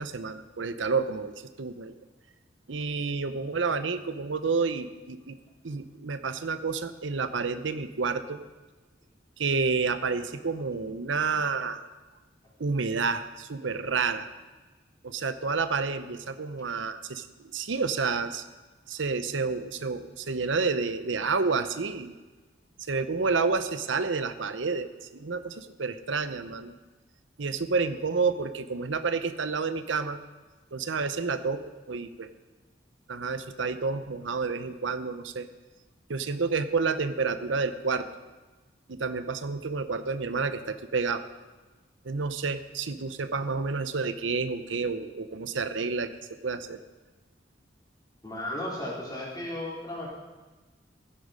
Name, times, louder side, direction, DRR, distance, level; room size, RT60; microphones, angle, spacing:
voice 1, 0.0-1.9 2.7-5.4 5.6-8.4 9.4-11.9 12.6-14.3 15.0-17.3 17.5-18.4 18.9-22.2 22.9-26.7 27.4-30.2 30.7-31.6 31.9-32.3 33.1-35.5 36.1-38.1 38.9-41.2 42.0-46.8, right 4 dB, 90° right, 11 dB, 0.8 m, -29 dB
voice 2, 48.2-50.1, left 1 dB, 20° left, -5 dB, 4.0 m, -34 dB
15.0 x 10.0 x 5.1 m, 1.2 s
head